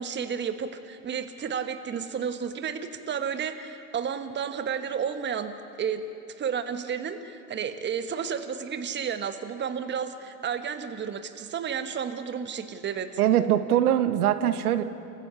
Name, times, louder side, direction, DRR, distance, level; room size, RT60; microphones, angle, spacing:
voice 1, 0.0-5.5 5.8-6.0 6.4-13.1, right 7 dB, 25° right, 9 dB, 1.4 m, -32 dB
voice 2, 13.2-14.8, right 11 dB, 70° right, 11 dB, 1.3 m, -22 dB
29.0 x 15.0 x 7.0 m, 2.6 s
hypercardioid pair, 100°, 47 cm